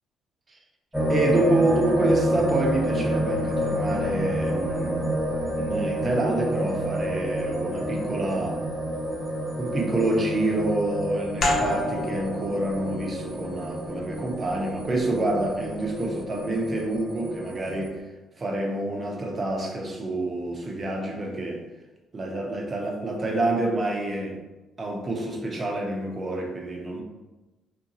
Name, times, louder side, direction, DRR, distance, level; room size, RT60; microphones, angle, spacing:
sound 1, 0.9-17.9, equal, 5° right, 1.1 m, -29 dB
voice 1, 1.1-5.2 5.6-8.6 9.6-17.9 18.4-21.6 22.1-24.4 24.8-27.0, right 2 dB, 35° right, 0 dB, 0.7 m, -27 dB
sound 2, 11.4-16.7, left 2 dB, 60° left, 0.6 m, -32 dB
2.8 x 2.2 x 2.7 m, 1.1 s
supercardioid pair, 70°, 0 cm